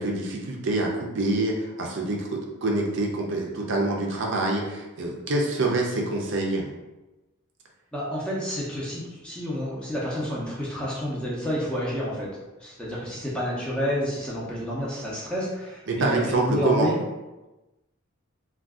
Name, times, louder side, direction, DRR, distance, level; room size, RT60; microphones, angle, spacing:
voice 1, 0.0-2.3 2.6-6.7 15.9-17.0, right 2 dB, 55° right, 0 dB, 0.5 m, -26 dB
voice 2, 7.9-12.3 12.6-16.9, equal, 5° left, -6 dB, 0.6 m, -29 dB
2.5 x 2.3 x 3.5 m, 1.1 s
head